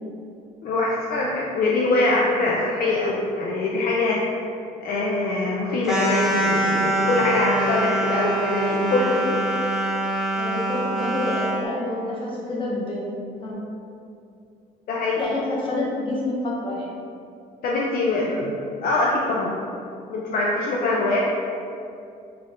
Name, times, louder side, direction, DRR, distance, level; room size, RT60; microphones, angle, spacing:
voice 1, 0.6-4.2 4.8-9.4 14.9-15.2 17.6-19.5 20.1-21.2, left 2 dB, 60° left, -3 dB, 0.5 m, -23 dB
sound 1, 5.8-11.6, right 1 dB, 5° right, 0.7 m, -24 dB
voice 2, 10.4-13.1 13.4-13.6 15.2-16.9, left 2 dB, 30° left, -5 dB, 1.1 m, -28 dB
4.6 x 2.4 x 3.6 m, 2.5 s
cardioid pair, 110°, 17 cm